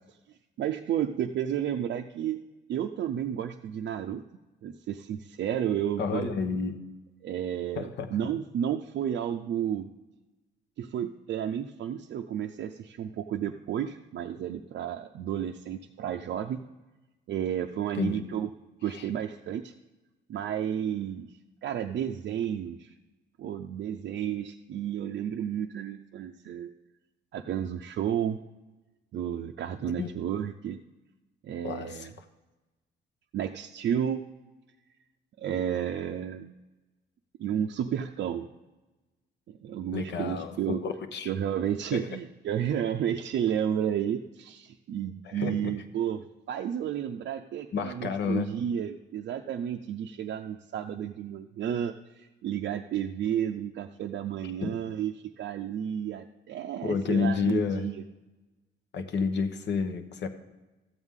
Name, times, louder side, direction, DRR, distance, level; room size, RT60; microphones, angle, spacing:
voice 1, 0.6-2.4 2.7-4.2 4.6-6.3 7.2-9.9 10.8-16.6 17.3-18.5 18.8-19.7 20.3-21.3 21.6-22.9 23.4-26.7 27.3-28.4 29.1-30.8 31.4-32.1 33.3-34.2 35.4-36.5 37.4-38.5 39.5-40.8 41.3-58.0, right 9 dB, 60° right, 3 dB, 0.5 m, -32 dB
voice 2, 6.0-6.8 7.8-8.1 17.9-18.3 18.9-19.0 30.0-30.1 31.6-32.1 39.9-41.3 41.9-42.1 45.2-45.7 47.7-48.6 54.6-54.7 56.8-57.9 58.9-60.3, left 5 dB, 65° left, 8 dB, 0.9 m, -30 dB
13.5 x 8.0 x 3.7 m, 1.1 s
cardioid pair, 90°, 20 cm